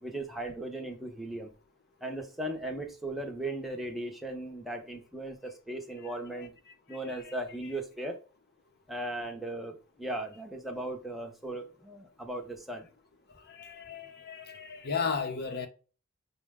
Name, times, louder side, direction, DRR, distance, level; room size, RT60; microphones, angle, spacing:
voice 1, 0.0-1.5 2.0-6.5 6.9-8.2 8.9-12.9, right 1 dB, ahead, 0.7 m, -37 dB
voice 2, 13.5-15.7, left 5 dB, 50° left, 0.6 m, -35 dB
5.5 x 2.1 x 3.5 m
head